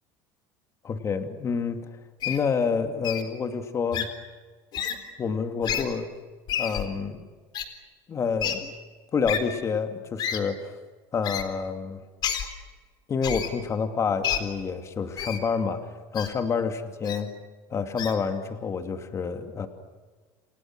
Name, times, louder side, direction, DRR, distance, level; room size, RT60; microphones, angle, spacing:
voice 1, 0.8-2.0 2.2-4.1 5.2-6.1 6.6-7.3 8.1-8.7 9.1-10.7 11.1-12.0 13.1-17.4 17.7-19.7, left 5 dB, 30° left, 7 dB, 2.7 m, -28 dB
Wild animals, 2.2-2.4 3.0-3.2 3.9-4.1 4.7-5.0 5.6-5.8 6.5-6.8 7.5-7.6 8.4-8.5 9.3-9.4 10.2-10.4 11.2-11.4 12.2-12.5 13.2-13.5 14.2-14.4 15.2-15.4 16.1-16.3 17.0-17.2 18.0-18.1, left 9 dB, 45° left, 4.0 m, -29 dB
28.5 x 28.5 x 6.4 m, 1.4 s
supercardioid pair, 125°, 10 cm